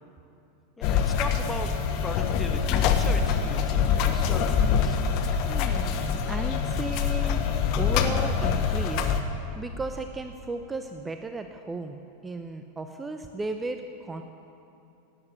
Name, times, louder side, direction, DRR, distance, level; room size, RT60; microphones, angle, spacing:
sound 1, 0.8-9.2, left 7 dB, 50° left, 1.3 m, -25 dB
voice 1, 0.8-1.7 2.0-5.0, left 3 dB, 15° left, 5 dB, 1.5 m, -38 dB
sound 2, 0.9-9.0, left 1 dB, 90° left, 2.7 m, -41 dB
voice 2, 5.5-9.2 9.6-14.2, right 3 dB, 15° right, 7 dB, 0.8 m, -35 dB
17.5 x 9.8 x 8.3 m, 2.7 s
figure-of-eight pair, 90°, 0 cm